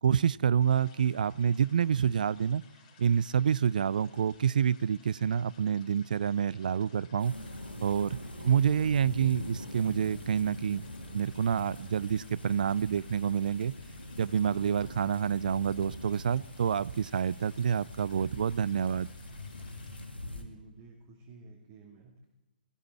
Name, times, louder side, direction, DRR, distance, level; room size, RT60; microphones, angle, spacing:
voice 1, 0.0-2.6 3.0-7.4 7.8-13.7 14.2-19.1, right 8 dB, 55° right, 23 dB, 0.4 m, -28 dB
sound 1, 0.6-20.1, left 6 dB, 40° left, 4.8 m, -60 dB
sound 2, 7.2-20.4, left 1 dB, 90° left, 2.3 m, -43 dB
sound 3, 12.0-19.2, left 3 dB, 15° left, 2.5 m, -59 dB
voice 2, 20.2-22.3, right 3 dB, 30° right, -2 dB, 2.7 m, -52 dB
18.5 x 15.0 x 4.7 m, 1.0 s
figure-of-eight pair, 130°, 5 cm